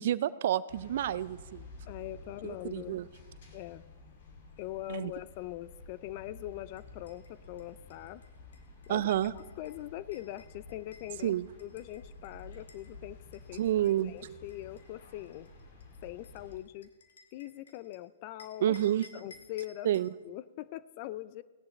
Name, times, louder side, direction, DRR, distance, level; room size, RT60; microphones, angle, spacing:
voice 1, 0.0-1.7 2.4-3.1 4.9-5.1 8.9-9.3 11.2-11.5 13.6-14.1 18.6-19.1 19.8-20.1, right 12 dB, 60° right, 18 dB, 0.4 m, -29 dB
sound 1, 0.7-16.6, left 3 dB, 65° left, 2.4 m, -52 dB
voice 2, 1.9-3.0 3.5-3.8 4.6-8.2 8.9-9.0 9.6-11.4 11.6-13.6 14.0-15.5 16.0-16.9 17.3-18.8 19.1-19.9 20.2-21.4, left 15 dB, 45° left, 18 dB, 0.4 m, -42 dB
sound 2, 6.7-12.9 13.3-18.0 18.4-20.1, left 3 dB, 85° left, 1.6 m, -59 dB
17.5 x 10.5 x 3.2 m, 1.3 s
hypercardioid pair, 135°, 0 cm